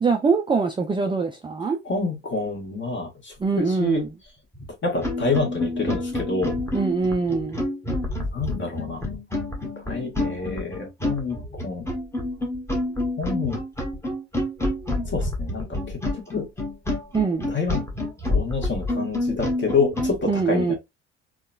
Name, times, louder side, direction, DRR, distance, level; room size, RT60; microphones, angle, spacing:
voice 1, 0.0-1.8 3.4-4.1 6.7-7.7 17.1-17.5 20.3-20.7, right 4 dB, 15° right, 0.4 m, -23 dB
voice 2, 1.8-4.0 4.8-6.5 8.3-9.1 9.8-11.9 13.2-13.6 15.1-16.5 17.5-17.9 18.3-20.7, left 4 dB, 30° left, 1.4 m, -28 dB
sound 1, 4.5-4.7 5.0-20.2, left 1 dB, 5° left, 1.1 m, -28 dB
3.6 x 2.2 x 2.3 m
hypercardioid pair, 60°, 35 cm